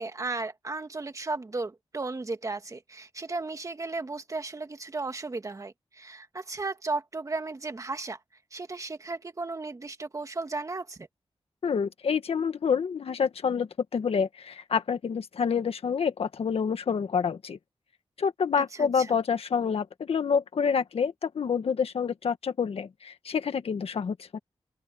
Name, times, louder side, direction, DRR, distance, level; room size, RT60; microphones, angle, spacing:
voice 1, 0.0-8.2 8.5-11.1 18.8-19.2, right 3 dB, 35° right, 2.0 m, -35 dB
voice 2, 11.6-17.6 18.2-24.4, left 6 dB, 80° left, 1.6 m, -28 dB
open air
wide cardioid pair, 115°, 10 cm